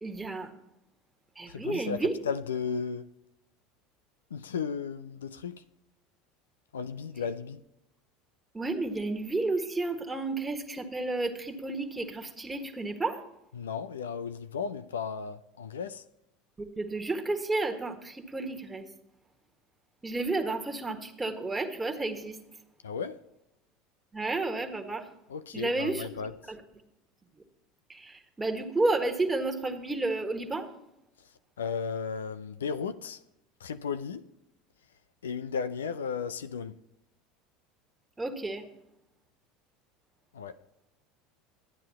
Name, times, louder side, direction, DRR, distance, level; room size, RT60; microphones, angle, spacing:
voice 1, 0.0-0.5 1.3-2.2 8.5-13.2 16.6-18.8 20.0-22.4 24.1-25.1 25.5-26.1 26.5-26.6 27.9-30.7 38.2-38.6, right 2 dB, 15° right, 1.7 m, -31 dB
voice 2, 1.5-3.1 4.3-5.6 6.7-7.6 13.5-16.0 22.8-23.2 25.3-26.3 31.6-33.2 33.6-34.3 35.2-36.8 40.3-40.6, left 6 dB, 85° left, 0.5 m, -35 dB
12.5 x 9.2 x 4.3 m
hypercardioid pair, 75°, 0 cm